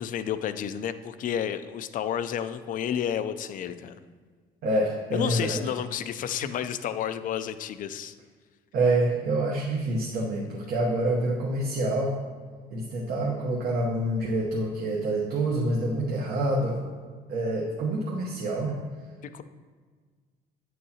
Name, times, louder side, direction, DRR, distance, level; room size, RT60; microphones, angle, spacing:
voice 1, 0.0-4.0 5.1-8.1 19.2-19.4, left 9 dB, 50° left, 12 dB, 0.4 m, -31 dB
voice 2, 4.6-5.7 6.3-6.5 8.7-12.2 12.7-16.8 17.3-18.8, right 1 dB, 65° right, -3 dB, 0.9 m, -27 dB
8.7 x 6.4 x 2.8 m, 1.6 s
cardioid pair, 110°, 17 cm